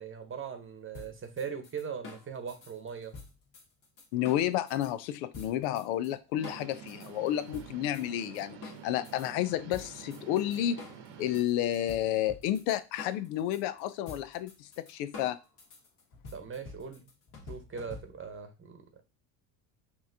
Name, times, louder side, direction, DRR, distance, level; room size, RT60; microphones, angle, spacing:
voice 1, 0.0-3.1 16.3-17.0 17.5-19.0, right 6 dB, 25° right, 1.0 m, -40 dB
sound 1, 0.9-4.9 5.3-6.1 6.4-9.3 9.7-18.4, left 4 dB, 50° left, 1.8 m, -48 dB
voice 2, 4.1-10.8 11.2-15.4, left 12 dB, 80° left, 0.6 m, -31 dB
sound 2, 6.4-11.4, right 7 dB, 55° right, 0.9 m, -49 dB
5.5 x 2.9 x 2.7 m
supercardioid pair, 85°, 49 cm